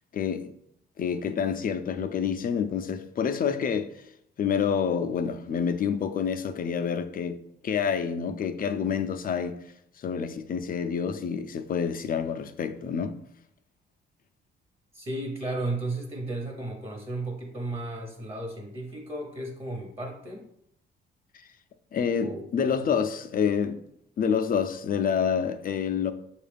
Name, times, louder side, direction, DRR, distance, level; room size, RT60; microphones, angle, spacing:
voice 1, 0.1-0.5 1.0-3.9 4.4-9.6 10.0-13.2 21.9-23.8 24.2-26.1, left 7 dB, 45° left, 0.5 m, -28 dB
voice 2, 14.9-20.5 22.2-23.0, right 2 dB, 30° right, 1.0 m, -34 dB
6.4 x 2.4 x 3.4 m
cardioid pair, 90°, 20 cm